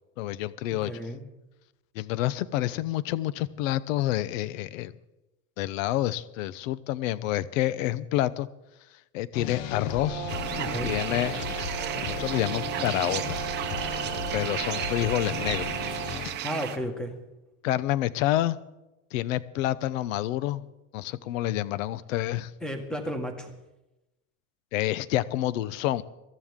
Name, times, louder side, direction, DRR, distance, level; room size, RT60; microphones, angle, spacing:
voice 1, 0.2-0.9 1.9-4.9 5.6-8.5 9.1-10.3 10.8-11.3 12.0-13.5 14.3-15.7 17.6-18.6 19.1-20.6 20.9-22.5 24.7-26.0, left 14 dB, 80° left, 17 dB, 0.8 m, -28 dB
voice 2, 0.7-1.2 10.6-10.9 16.4-17.1 22.6-23.5, equal, ahead, 5 dB, 1.6 m, -33 dB
sound 1, 9.3-16.3, left 8 dB, 50° left, 1.1 m, -36 dB
Brass instrument, 10.0-16.3, right 18 dB, 85° right, 0.7 m, -37 dB
sound 2, 10.3-16.8, right 12 dB, 25° right, 0.8 m, -34 dB
22.5 x 14.5 x 3.7 m, 0.99 s
supercardioid pair, 160°, 39 cm